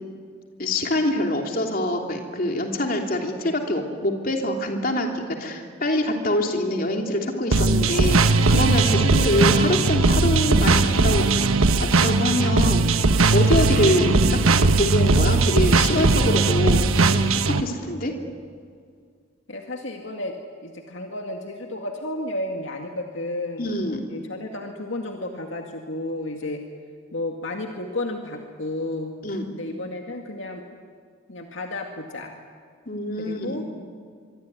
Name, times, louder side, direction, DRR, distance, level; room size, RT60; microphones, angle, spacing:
voice 1, 0.6-12.9 13.3-14.2 14.7-18.1 23.6-24.0 29.2-29.5 32.9-33.6, left 1 dB, 45° left, 2 dB, 3.2 m, -25 dB
sound 1, 7.5-17.6, right 3 dB, 90° right, 1.3 m, -19 dB
voice 2, 19.5-20.4 20.6-23.7 24.1-26.6 27.1-29.2 29.5-30.6 31.3-32.4 33.2-33.7, left 2 dB, 65° left, 2 dB, 2.2 m, -32 dB
24.5 x 24.0 x 9.7 m, 2.1 s
head